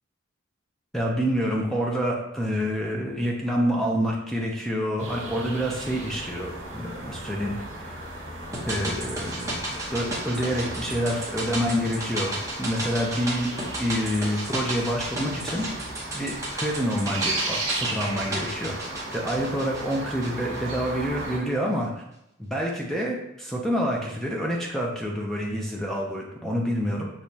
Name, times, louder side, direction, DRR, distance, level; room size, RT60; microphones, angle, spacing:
voice 1, 0.9-7.9 8.7-9.6 9.9-13.5 13.8-15.7 16.1-18.8 19.1-21.9 22.4-27.1, equal, ahead, -2 dB, 0.5 m, -27 dB
sound 1, 5.0-21.4, right 2 dB, 65° right, 1.6 m, -36 dB
sound 2, 8.5-20.9 21.2-21.3, right 1 dB, 15° right, 1.0 m, -34 dB
6.3 x 3.0 x 2.8 m, 0.85 s
head